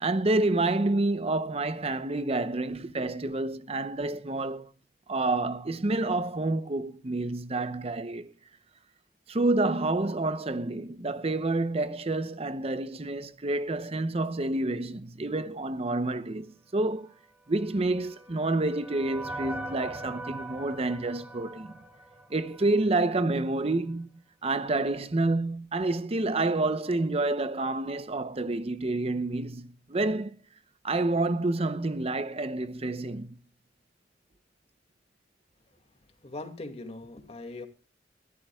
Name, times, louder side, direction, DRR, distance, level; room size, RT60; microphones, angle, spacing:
voice 1, 0.0-4.7 5.1-8.3 9.3-17.1 17.5-21.7 22.3-24.1 24.4-30.3 30.8-33.3, right 2 dB, 35° right, 0.7 m, -28 dB
sound 1, 17.6-22.9, right 2 dB, 10° right, 3.1 m, -41 dB
voice 2, 36.2-37.7, left 2 dB, 35° left, 2.2 m, -40 dB
24.0 x 13.0 x 2.3 m
head